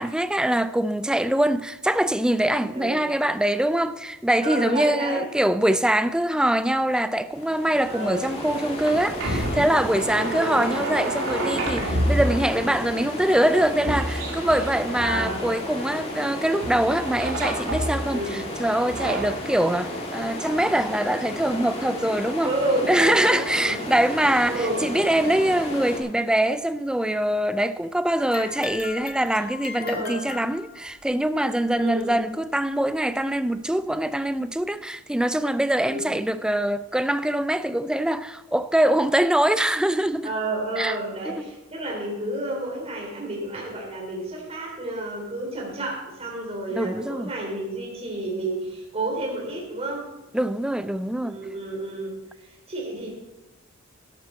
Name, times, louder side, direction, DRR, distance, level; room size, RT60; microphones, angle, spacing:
voice 1, 0.0-22.5 22.8-40.3 40.8-41.0 41.3-41.5 46.7-47.3 50.3-51.4, right 1 dB, 5° right, 0.3 m, -23 dB
voice 2, 4.4-5.2 7.9-8.2 10.1-10.7 14.9-15.4 18.1-18.3 22.4-23.8 24.5-24.8 29.8-30.2 31.8-32.1 35.9-36.1 40.2-50.0 51.2-53.1, right 1 dB, 30° right, 3.4 m, -30 dB
sound 1, 7.3-26.0, left 1 dB, 30° left, 2.0 m, -33 dB
sound 2, 7.9-16.2 16.6-18.2 18.7-19.3, right 1 dB, 70° right, 2.7 m, -29 dB
sound 3, 28.2-31.0 32.0-32.1 32.9-33.0 33.9-34.0, left 6 dB, 50° left, 1.2 m, -38 dB
12.5 x 11.5 x 4.4 m
head